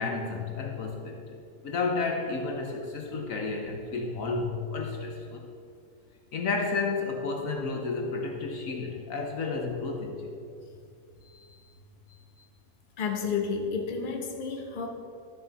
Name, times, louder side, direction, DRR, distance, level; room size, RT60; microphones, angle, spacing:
voice 1, 0.0-1.4 1.6-5.5 6.3-10.2, left 4 dB, 65° left, 2 dB, 1.2 m, -31 dB
voice 2, 13.0-14.9, left 5 dB, 35° left, 2 dB, 1.0 m, -31 dB
12.0 x 7.2 x 4.1 m, 2.4 s
omnidirectional pair, 1.6 m